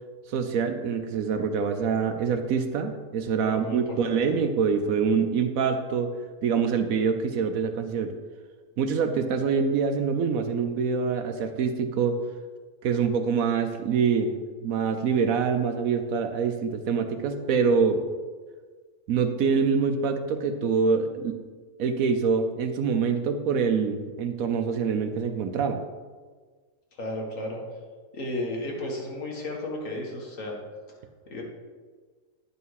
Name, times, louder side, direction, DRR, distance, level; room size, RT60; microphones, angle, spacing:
voice 1, 0.3-6.1 6.4-8.1 8.8-12.2 12.8-18.0 19.1-21.4 21.8-25.8, right 5 dB, 70° right, 7 dB, 1.1 m, -25 dB
voice 2, 3.4-4.2 26.9-27.6 28.1-30.6 31.3-31.4, left 1 dB, 60° left, -1 dB, 1.9 m, -33 dB
10.0 x 5.6 x 4.7 m, 1.5 s
omnidirectional pair, 1.6 m